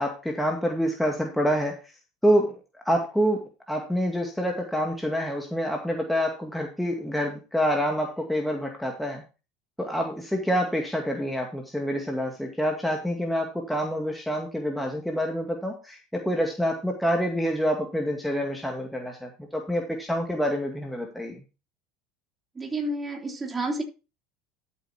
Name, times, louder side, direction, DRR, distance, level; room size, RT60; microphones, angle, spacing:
voice 1, 0.0-1.7 2.2-2.6 2.9-3.4 3.7-9.2 9.8-21.4, equal, 5° left, 1 dB, 2.2 m, -27 dB
voice 2, 22.6-23.8, right 2 dB, 20° right, 2 dB, 3.6 m, -30 dB
13.0 x 8.3 x 2.9 m, 0.31 s
figure-of-eight pair, 75°, 0 cm